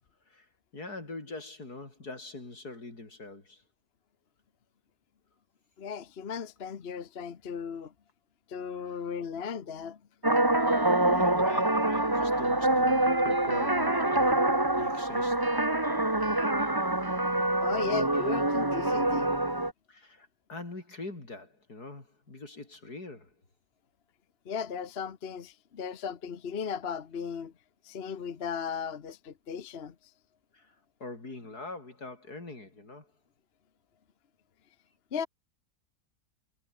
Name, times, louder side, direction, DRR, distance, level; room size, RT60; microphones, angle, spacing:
voice 1, 0.7-3.6 10.9-14.2 14.7-15.4 19.9-23.3 30.5-30.7 31.0-33.1, left 2 dB, 80° left, 5.7 m, -42 dB
voice 2, 5.8-7.9 8.5-10.0 17.6-19.5 24.4-27.5 27.8-29.9 35.1-35.3, left 7 dB, 45° left, 1.2 m, -36 dB
sound 1, 10.2-19.7, right 1 dB, 15° right, 2.1 m, -26 dB
omnidirectional pair, 1.6 m